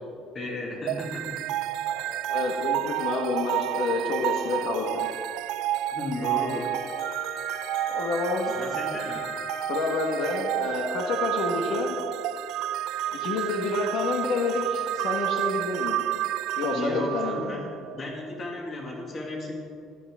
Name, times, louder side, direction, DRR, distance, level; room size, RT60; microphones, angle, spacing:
voice 1, 0.3-1.4 5.9-6.8 8.5-9.2 16.7-19.5, left 1 dB, 25° left, 0 dB, 1.9 m, -34 dB
sound 1, 0.9-18.0, right 13 dB, 60° right, 0.3 m, -30 dB
voice 2, 1.9-5.1 7.9-8.5 9.7-12.0 13.1-16.0 16.6-17.7, left 3 dB, 60° left, 1 dB, 1.4 m, -28 dB
Wind instrument woodwind instrument, 6.0-10.7, left 2 dB, 80° left, 3.7 m, -40 dB
16.0 x 11.5 x 3.6 m, 2.4 s
cardioid pair, 175°, 0 cm